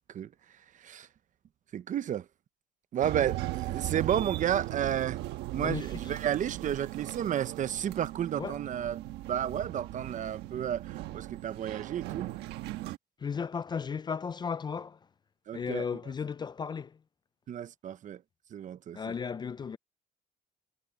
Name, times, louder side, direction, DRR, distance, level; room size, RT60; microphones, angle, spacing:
voice 1, 1.7-2.2 2.9-5.2 5.5-12.3 15.5-15.8 17.5-18.2 18.5-19.0, right 10 dB, 50° right, 0.8 m, -32 dB
sound 1, 3.0-13.0, right 16 dB, 90° right, 1.3 m, -38 dB
voice 2, 5.6-6.0 8.4-8.6 13.2-15.1 15.5-17.0 18.9-19.8, left 6 dB, 25° left, 0.4 m, -35 dB
cardioid pair, 110°, 17 cm